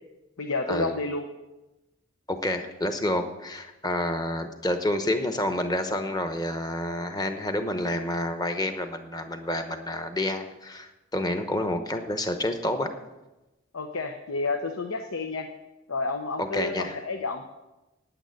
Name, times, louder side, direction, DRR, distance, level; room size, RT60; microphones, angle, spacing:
voice 1, 0.4-1.2 13.7-15.5 15.9-17.4, left 3 dB, 85° left, 5 dB, 0.9 m, -30 dB
voice 2, 2.3-12.9 16.4-17.0, left 1 dB, 20° left, 7 dB, 0.9 m, -29 dB
9.1 x 9.1 x 9.0 m, 1.0 s
head